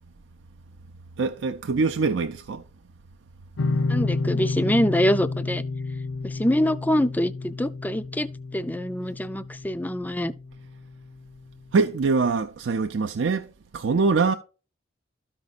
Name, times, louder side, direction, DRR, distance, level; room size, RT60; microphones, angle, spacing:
voice 1, 1.2-2.6 11.7-13.5 13.7-14.3, right 4 dB, 75° right, 0.5 m, -23 dB
sound 1, 3.6-10.8, left 3 dB, 80° left, 0.5 m, -30 dB
voice 2, 3.9-5.6 6.2-8.3 8.5-10.3, equal, 10° left, 0.3 m, -25 dB
13.0 x 5.2 x 2.4 m
head